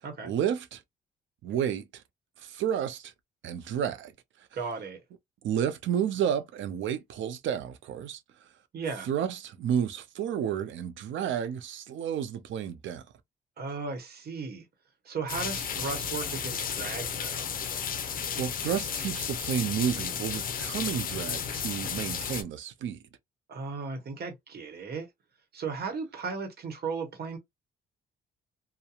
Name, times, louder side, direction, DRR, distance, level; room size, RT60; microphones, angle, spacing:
voice 1, 0.2-0.8 1.4-2.0 2.4-3.1 3.4-4.1 5.4-8.2 9.1-13.0 18.2-23.0, right 9 dB, 75° right, 0.6 m, -31 dB
voice 2, 4.5-5.0 8.7-9.1 13.6-14.7 15.0-17.5 23.5-25.1 25.5-27.4, right 4 dB, 55° right, 1.1 m, -36 dB
sound 1, 15.3-22.4, left 7 dB, 45° left, 0.5 m, -33 dB
2.8 x 2.2 x 2.3 m
cardioid pair, 90°, 20 cm